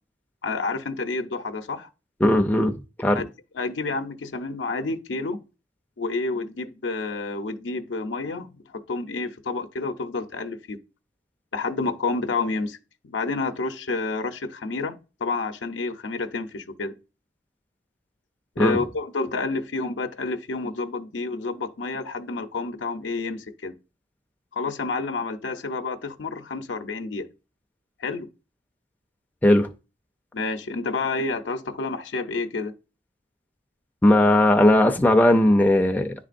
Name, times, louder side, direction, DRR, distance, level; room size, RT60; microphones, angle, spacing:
voice 1, 0.4-1.9 3.1-3.3 3.5-5.4 6.0-10.8 11.5-12.8 13.0-14.9 15.2-16.9 18.6-23.7 24.5-27.3 28.0-28.3 30.3-32.7, left 3 dB, 80° left, 0.6 m, -29 dB
voice 2, 2.2-3.2 18.6-18.8 29.4-29.7 34.0-36.1, left 1 dB, 10° left, 0.4 m, -18 dB
10.5 x 3.6 x 2.5 m
head